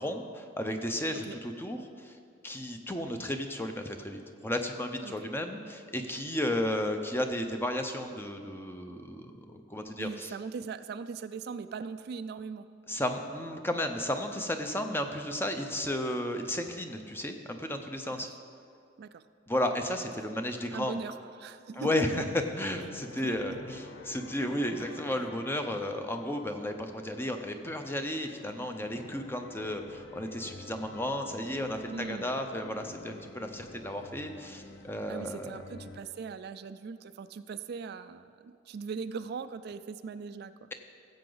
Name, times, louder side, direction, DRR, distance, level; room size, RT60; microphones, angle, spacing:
voice 1, 0.0-2.2 2.4-10.3 12.9-18.3 19.5-21.0 21.8-35.6, left 1 dB, 10° left, 6 dB, 0.6 m, -33 dB
voice 2, 10.0-12.7 18.2-18.3 19.0-19.2 20.7-22.1 23.2-23.6 31.9-32.3 35.1-40.7, right 5 dB, 55° right, 11 dB, 0.3 m, -40 dB
sound 1, 22.2-36.0, left 2 dB, 65° left, 0.8 m, -49 dB
16.0 x 7.7 x 3.9 m, 2.3 s
head